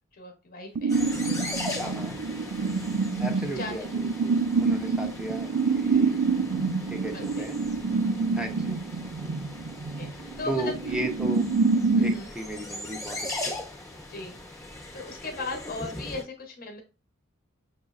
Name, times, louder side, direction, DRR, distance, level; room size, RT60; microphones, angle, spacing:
voice 1, 0.1-1.0 3.6-4.0 4.8-5.0 7.1-7.5 8.1-8.4 10.0-10.7 11.9-12.3 14.1-14.4 14.9-16.8, left 2 dB, 45° left, 3 dB, 0.9 m, -38 dB
sound 1, 0.7-12.2, right 4 dB, 55° right, 0.4 m, -27 dB
sound 2, 0.9-16.2, left 2 dB, 15° left, 0.9 m, -39 dB
voice 2, 1.7-2.2 3.2-6.2 6.9-7.6 8.3-8.8 10.4-11.5 12.0-13.5, right 1 dB, 5° right, 3 dB, 0.6 m, -35 dB
6.2 x 3.0 x 2.4 m, 0.30 s
head